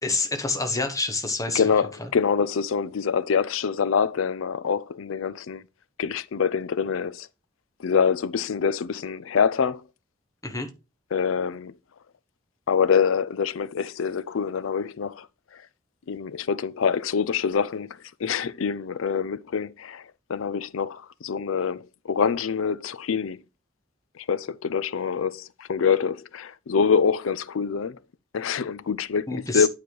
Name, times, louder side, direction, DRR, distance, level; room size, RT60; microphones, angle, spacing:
voice 1, 0.0-1.6 10.4-10.7 29.3-29.7, left 3 dB, 15° left, 1.0 m, -27 dB
voice 2, 1.5-5.6 6.0-7.3 7.8-9.8 11.1-11.7 12.7-15.3 15.5-15.6 16.1-23.4 24.2-28.0 28.3-29.7, left 6 dB, 85° left, 0.5 m, -25 dB
9.3 x 4.0 x 4.7 m
head